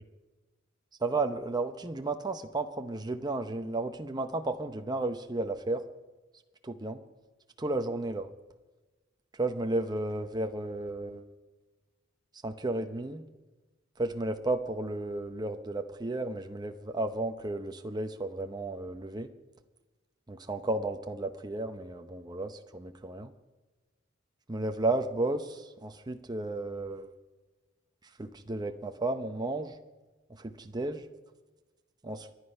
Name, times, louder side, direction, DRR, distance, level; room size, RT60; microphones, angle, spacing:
voice 1, 1.0-5.8 6.6-7.0 7.6-8.3 9.4-11.2 12.4-13.2 14.0-19.3 20.3-23.3 24.5-27.1 28.2-29.8 30.4-31.1 32.0-32.3, right 2 dB, 20° right, 6 dB, 0.7 m, -33 dB
24.0 x 9.8 x 5.5 m, 1.2 s
head